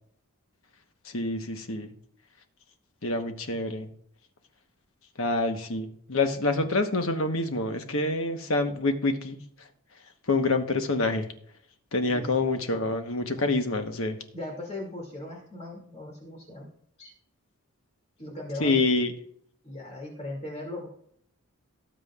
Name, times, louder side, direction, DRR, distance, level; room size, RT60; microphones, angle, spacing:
voice 1, 1.0-1.9 3.0-3.9 5.2-9.4 10.3-11.3 11.9-14.2 18.6-19.1, left 2 dB, 65° left, 5 dB, 1.2 m, -27 dB
voice 2, 12.1-12.5 13.4-13.5 14.3-16.7 17.0-17.1 18.2-18.8 19.6-20.9, left 1 dB, 30° left, -2 dB, 2.5 m, -38 dB
18.5 x 7.5 x 2.5 m, 0.67 s
head